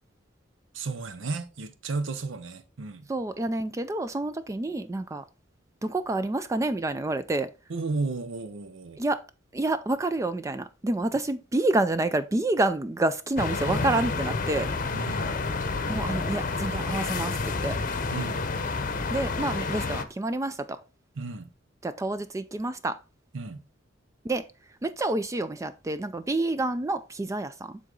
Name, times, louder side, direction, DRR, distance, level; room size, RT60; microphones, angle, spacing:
voice 1, 0.7-3.1 7.7-9.0 14.9-15.4 18.1-18.5 21.2-21.5 23.3-23.6, right 3 dB, 75° right, 0.6 m, -33 dB
voice 2, 3.1-5.2 5.8-7.5 9.0-9.2 9.5-14.7 15.9-17.8 19.1-20.7 21.8-23.0 24.2-24.4 24.8-27.8, right 2 dB, 15° right, 0.3 m, -28 dB
sound 1, 13.4-20.0, left 3 dB, 45° left, 0.8 m, -29 dB
9.3 x 3.9 x 3.7 m
head